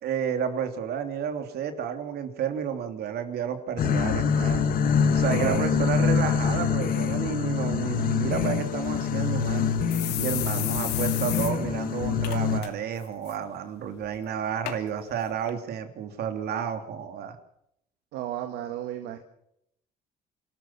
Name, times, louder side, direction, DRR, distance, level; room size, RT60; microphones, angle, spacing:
voice 1, 0.0-4.6 5.1-9.7 10.2-17.4, right 8 dB, 70° right, 7 dB, 3.2 m, -31 dB
sound 1, 3.8-12.6, left 6 dB, 60° left, 2.0 m, -25 dB
voice 2, 5.3-6.1 18.1-19.2, right 11 dB, 90° right, 6 dB, 1.9 m, -34 dB
sound 2, 9.0-9.1 9.4-9.5 9.9-11.5 11.8-11.9 12.2-12.7 13.0-13.3 14.0-14.1 14.6-14.8 15.5-15.6, left 13 dB, 80° left, 2.7 m, -33 dB
27.0 x 13.5 x 7.3 m, 0.76 s
cardioid pair, 110°, 17 cm